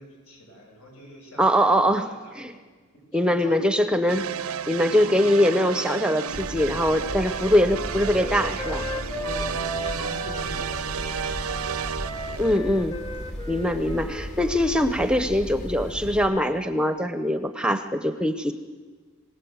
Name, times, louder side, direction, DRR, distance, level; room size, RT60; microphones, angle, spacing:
voice 1, 0.0-2.6 2.9-3.7 7.1-7.4 9.0-12.4, equal, 80° left, 0 dB, 7.9 m, -45 dB
voice 2, 1.4-2.1 2.4-2.5 3.1-4.3 4.7-8.9 12.4-13.0 13.5-18.5, equal, 5° right, 9 dB, 0.7 m, -22 dB
sound 1, 4.1-12.6, right 7 dB, 80° right, 0.6 m, -32 dB
sound 2, 6.3-16.3, equal, 50° left, 3.0 m, -36 dB
Wind instrument woodwind instrument, 7.2-10.8 11.0-14.9, left 1 dB, 20° left, 1.1 m, -37 dB
25.5 x 18.0 x 7.9 m, 1.5 s
head